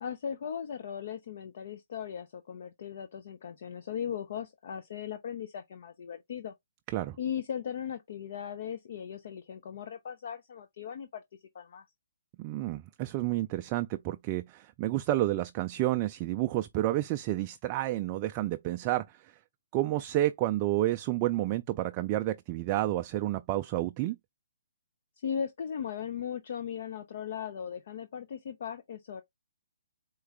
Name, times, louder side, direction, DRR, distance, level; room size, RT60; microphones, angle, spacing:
voice 1, 0.0-6.5 7.2-11.2 11.5-11.8 25.2-29.2, left 8 dB, 50° left, 0.6 m, -38 dB
voice 2, 12.4-19.3 19.7-24.2, right 15 dB, 30° right, 0.3 m, -30 dB
4.6 x 3.1 x 3.4 m
figure-of-eight pair, 135°, 0 cm